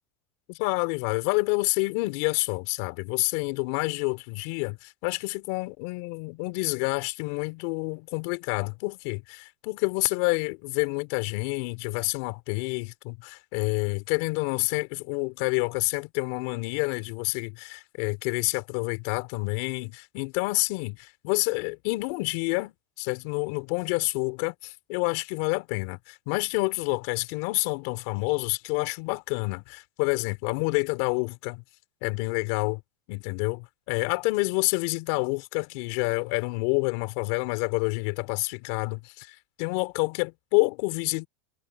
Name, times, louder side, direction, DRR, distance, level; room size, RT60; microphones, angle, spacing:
voice 1, 0.5-31.6 32.0-32.8 33.1-41.3, left 28 dB, 55° left, 3.7 m, -28 dB
supercardioid pair, 145°, 8 cm